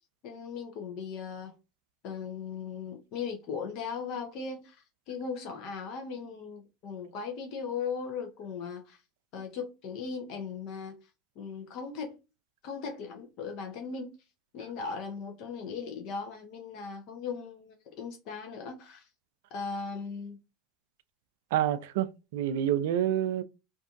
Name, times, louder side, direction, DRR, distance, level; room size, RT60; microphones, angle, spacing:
voice 1, 0.2-1.5 2.0-9.0 9.3-11.1 11.4-12.2 12.6-14.2 14.5-19.1 19.5-20.4, left 5 dB, 60° left, 0.6 m, -38 dB
voice 2, 21.5-23.4, right 11 dB, 70° right, 0.3 m, -28 dB
2.6 x 2.4 x 2.5 m
hypercardioid pair, 85°, 0 cm